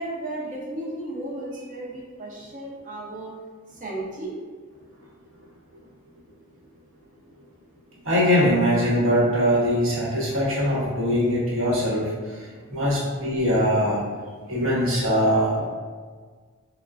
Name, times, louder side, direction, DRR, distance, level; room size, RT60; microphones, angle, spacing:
voice 1, 0.0-3.3 3.7-4.4, right 1 dB, 40° right, -5 dB, 0.7 m, -34 dB
voice 2, 8.0-12.1 12.7-14.0 14.5-15.6, equal, 65° right, -6 dB, 0.9 m, -21 dB
3.5 x 2.1 x 2.4 m, 1.5 s
head